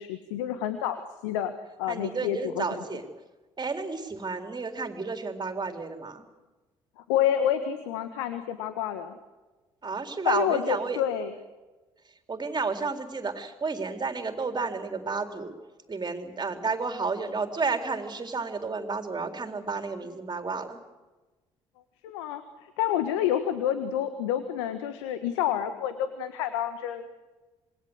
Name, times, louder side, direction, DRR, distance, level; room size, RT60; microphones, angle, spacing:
voice 1, 0.0-1.5 1.8-2.8 7.0-9.2 10.2-11.3 22.0-27.0, left 10 dB, 80° left, 10 dB, 1.5 m, -29 dB
voice 2, 1.9-3.1 3.6-6.2 9.8-11.0 12.3-15.5 15.9-20.8, right 4 dB, 30° right, 6 dB, 3.9 m, -31 dB
27.0 x 21.5 x 8.1 m, 1.2 s
hypercardioid pair, 50°, 14 cm